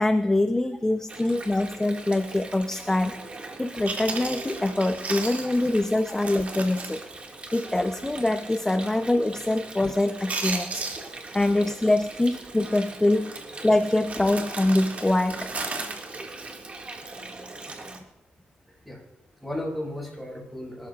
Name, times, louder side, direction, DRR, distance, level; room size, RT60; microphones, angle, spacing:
voice 1, 0.0-3.1 3.6-7.0 7.5-10.7 11.3-13.3 13.6-15.5, left 2 dB, 15° left, 8 dB, 0.8 m, -24 dB
Water, 1.1-18.0, right 2 dB, 35° right, 2.3 m, -41 dB
Chewing mastication, 3.5-3.6 3.9-7.9 8.2-8.3 8.8-9.1 9.4-9.8 10.1-11.7 11.9-12.2 12.6-12.8 13.2-17.1 17.6-17.8, right 3 dB, 50° right, 2.7 m, -36 dB
voice 2, 18.6-19.0 19.4-20.9, left 1 dB, ahead, -2 dB, 6.8 m, -35 dB
25.0 x 13.5 x 2.6 m, 0.93 s
cardioid pair, 80°, 3 cm